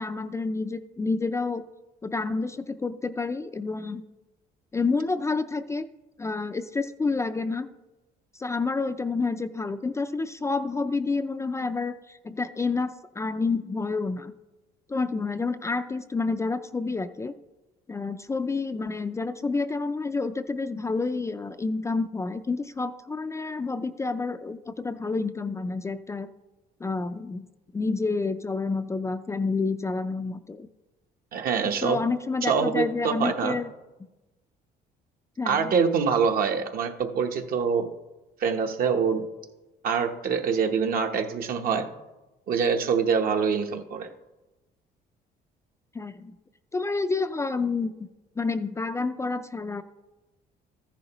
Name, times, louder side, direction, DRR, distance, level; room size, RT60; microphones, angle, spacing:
voice 1, 0.0-1.6 2.0-4.0 4.7-5.9 6.2-7.7 8.3-14.3 14.9-17.3 17.9-26.3 26.8-27.5 27.7-30.7 31.6-33.7 35.4-35.7 45.9-46.3 46.7-48.1 48.4-49.8, left 3 dB, 15° left, 10 dB, 0.4 m, -29 dB
voice 2, 31.3-32.0 32.4-33.5 35.4-37.9 38.4-39.3 39.8-41.9 42.5-44.1, right 6 dB, 60° right, 5 dB, 1.0 m, -25 dB
14.0 x 10.0 x 3.0 m, 1.1 s
cardioid pair, 110°, 17 cm